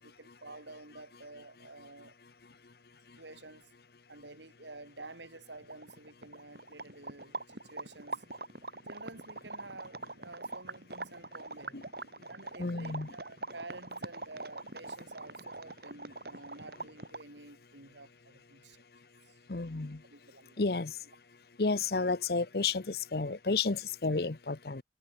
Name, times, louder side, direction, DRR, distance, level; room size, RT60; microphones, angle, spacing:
voice 1, 0.0-2.1 3.2-3.7 4.1-8.2 8.9-11.9 12.3-18.8 19.3-19.4 20.1-20.6, right 2 dB, 85° right, 7.0 m, -50 dB
sound 1, 5.4-5.5 5.6-17.4, right 3 dB, 60° right, 4.4 m, -43 dB
voice 2, 12.6-13.1 19.5-20.0 20.6-20.9 21.6-24.8, left 4 dB, 60° left, 0.9 m, -31 dB
head